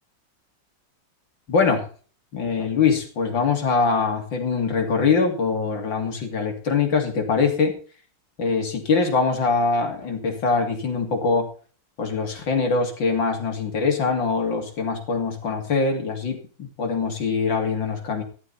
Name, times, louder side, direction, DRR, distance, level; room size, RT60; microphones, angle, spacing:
voice 1, 1.5-1.9 2.3-7.7 8.4-11.5 12.0-18.2, left 4 dB, 85° left, 4 dB, 3.5 m, -23 dB
15.5 x 12.0 x 4.2 m, 0.40 s
omnidirectional pair, 2.0 m